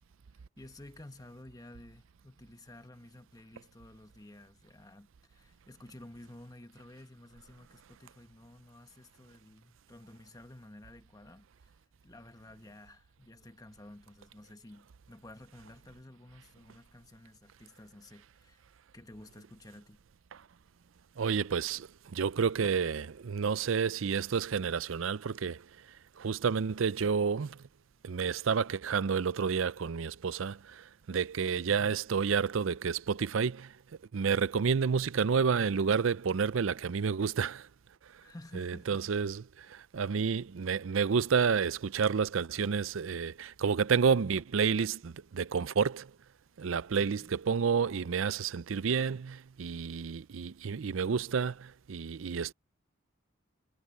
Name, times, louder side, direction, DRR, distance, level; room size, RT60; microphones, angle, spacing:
voice 1, 0.6-11.7 12.0-18.6 18.9-20.0 38.2-39.1 46.9-47.3, left 1 dB, 20° left, 1.2 m, -52 dB
voice 2, 21.2-25.7 26.2-27.6 28.0-33.7 34.1-37.7 38.6-46.1 46.6-52.5, right 6 dB, 80° right, 0.5 m, -30 dB
head